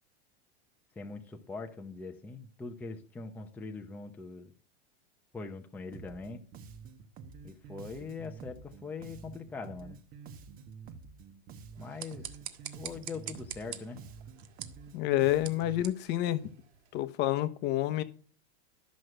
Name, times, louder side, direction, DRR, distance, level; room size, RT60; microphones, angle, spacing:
voice 1, 1.0-4.5 5.3-6.4 7.4-10.0 11.8-12.3 12.7-14.0, left 4 dB, 5° left, 3 dB, 0.8 m, -42 dB
Bass guitar, 5.9-15.8, right 5 dB, 25° right, 1.1 m, -49 dB
sound 1, 11.7-17.0, right 11 dB, 75° right, 1.8 m, -46 dB
voice 2, 14.9-16.5 16.9-18.0, left 14 dB, 35° left, 12 dB, 1.0 m, -28 dB
13.0 x 6.4 x 7.7 m, 0.42 s
supercardioid pair, 155°, 33 cm